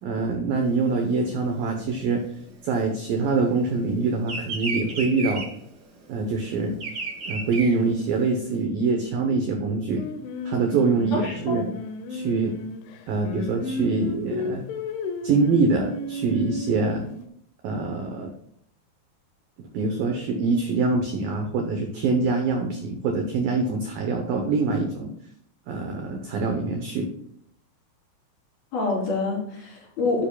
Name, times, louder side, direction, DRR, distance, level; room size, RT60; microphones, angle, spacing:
voice 1, 0.0-2.2 2.6-5.5 6.1-6.7 7.3-10.0 10.5-11.6 12.1-12.6 13.1-14.6 15.2-17.0 17.6-18.3 19.6-25.1 25.7-27.1, right 4 dB, 75° right, 3 dB, 2.1 m, -24 dB
Bird vocalization bird call bird song, 0.6-3.5 3.8-8.5, right 3 dB, 55° right, 1.2 m, -34 dB
Singing, 10.0-17.3, left 3 dB, 80° left, 3.3 m, -34 dB
voice 2, 11.1-11.6 28.7-30.3, left 3 dB, 55° left, -5 dB, 5.4 m, -26 dB
12.0 x 9.7 x 2.3 m, 0.69 s
omnidirectional pair, 5.4 m